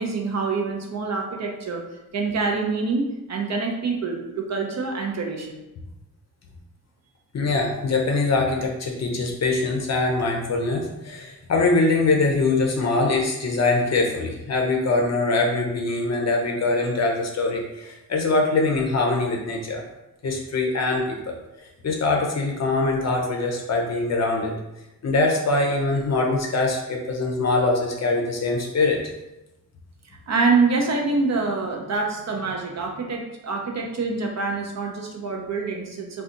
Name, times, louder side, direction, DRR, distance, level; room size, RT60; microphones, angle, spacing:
voice 1, 0.0-1.8 2.1-5.6 30.3-36.2, right 4 dB, 50° right, 1 dB, 0.5 m, -26 dB
voice 2, 7.3-19.8 20.2-24.5 25.0-29.0, left 3 dB, 45° left, 1 dB, 0.6 m, -23 dB
2.6 x 2.3 x 3.7 m, 0.96 s
wide cardioid pair, 145°, 36 cm